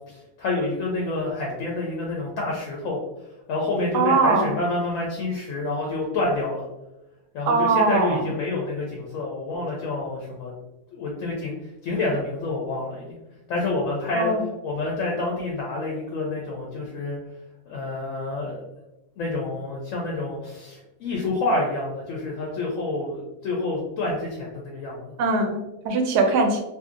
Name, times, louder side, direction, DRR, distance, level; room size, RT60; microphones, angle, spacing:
voice 1, 0.1-3.0 3.5-6.6 7.3-10.5 10.9-11.5 11.8-13.2 13.5-14.3 14.6-17.2 17.7-18.6 19.2-25.1, left 2 dB, 70° left, -2 dB, 0.8 m, -28 dB
voice 2, 3.9-4.5 7.5-8.2 14.1-14.4 25.2-26.6, right 3 dB, 85° right, 4 dB, 1.2 m, -21 dB
2.7 x 2.6 x 2.4 m, 0.97 s
omnidirectional pair, 1.7 m